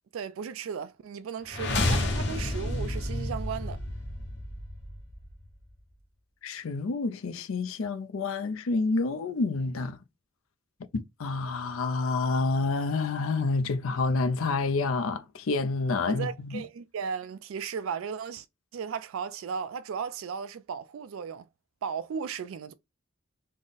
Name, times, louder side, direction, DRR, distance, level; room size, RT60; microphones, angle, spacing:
voice 1, 0.1-3.8 16.1-18.5 18.7-21.4 21.8-22.7, right 6 dB, 80° right, 0.3 m, -35 dB
sound 1, 1.5-5.4, left 2 dB, 55° left, 0.8 m, -30 dB
voice 2, 6.4-10.0 10.9-16.6, left 3 dB, 80° left, 0.5 m, -28 dB
3.6 x 2.1 x 3.8 m
head